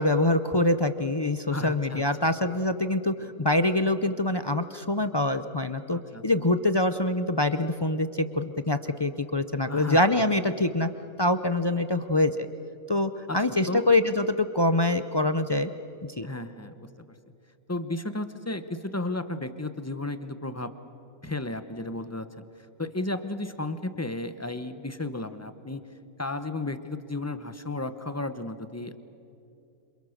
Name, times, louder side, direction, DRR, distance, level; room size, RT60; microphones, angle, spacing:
voice 1, 0.0-10.9 11.2-12.5 12.9-15.7 16.2-16.3, left 2 dB, 35° left, 10 dB, 0.4 m, -25 dB
voice 2, 1.5-2.1 5.9-6.2 9.7-10.0 13.3-13.4 13.7-13.8 16.2-16.9 17.7-20.7 21.2-22.3 22.8-25.8 26.2-29.0, left 2 dB, 15° left, 10 dB, 0.9 m, -33 dB
28.0 x 27.0 x 6.6 m, 2.8 s
omnidirectional pair, 1.5 m